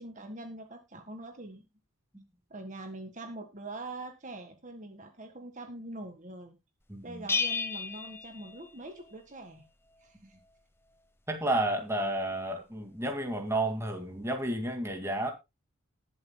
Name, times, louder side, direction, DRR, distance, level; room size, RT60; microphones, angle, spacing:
voice 1, 0.0-1.7 2.5-6.6 7.0-9.7 10.0-10.4, right 2 dB, 35° right, 1.6 m, -43 dB
voice 2, 6.9-7.2 10.2-10.3 11.3-15.3, right 1 dB, 15° right, 2.1 m, -31 dB
Bell, 7.3-9.1, left 5 dB, 10° left, 0.7 m, -33 dB
19.5 x 7.7 x 2.2 m
head